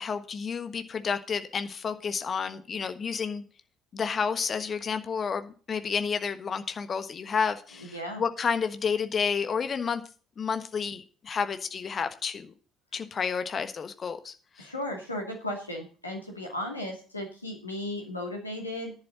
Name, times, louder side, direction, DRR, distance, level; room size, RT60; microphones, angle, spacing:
voice 1, 0.0-3.4 3.9-10.0 10.4-12.5 12.9-14.7, left 6 dB, 40° left, 10 dB, 1.3 m, -30 dB
voice 2, 7.8-8.2 14.6-18.9, left 1 dB, 85° left, 1 dB, 2.5 m, -35 dB
11.0 x 10.5 x 4.0 m, 0.38 s
figure-of-eight pair, 50°, 0 cm